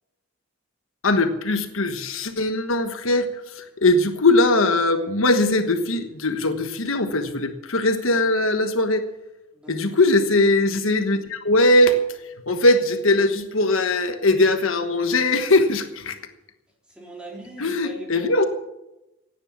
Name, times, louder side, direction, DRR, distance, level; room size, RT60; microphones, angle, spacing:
voice 1, 1.0-9.0 9.7-12.0 12.5-16.2 17.6-18.5, left 2 dB, 75° left, 7 dB, 1.3 m, -20 dB
voice 2, 9.5-9.9 16.9-18.5, right 1 dB, 5° right, -2 dB, 4.0 m, -40 dB
16.5 x 9.8 x 7.2 m, 0.94 s
head